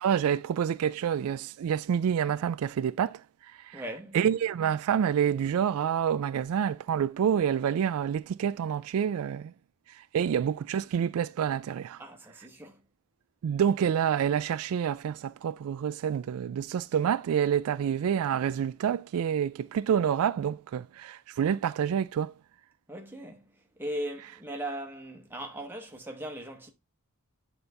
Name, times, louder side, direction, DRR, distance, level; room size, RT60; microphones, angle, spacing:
voice 1, 0.0-3.2 3.6-3.8 4.1-9.5 10.0-12.0 13.4-22.3, right 8 dB, 75° right, 0.3 m, -28 dB
voice 2, 3.7-4.2 12.0-12.8 22.9-23.5 23.8-26.7, right 1 dB, 10° right, 1.0 m, -38 dB
8.8 x 4.0 x 3.4 m
head